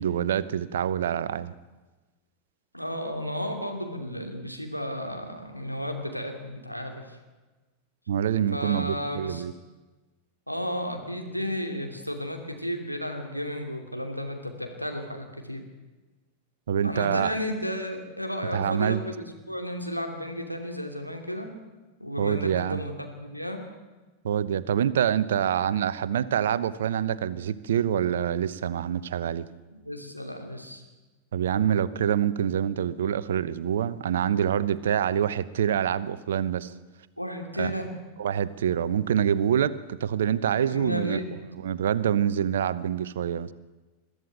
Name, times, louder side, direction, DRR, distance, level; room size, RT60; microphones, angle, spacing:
voice 1, 0.0-1.5 8.1-9.5 16.7-17.3 18.5-19.0 22.2-22.8 24.2-29.5 31.3-36.7 37.6-37.7 38.2-41.2 41.6-43.5, right 9 dB, 60° right, 16 dB, 0.9 m, -26 dB
voice 2, 2.7-7.2 8.5-9.4 10.5-15.6 16.8-21.5 22.0-23.6 29.7-30.8 37.2-37.9 40.6-41.3, equal, 90° left, 3 dB, 2.8 m, -33 dB
22.0 x 13.5 x 9.2 m, 1.2 s
figure-of-eight pair, 90°, 0 cm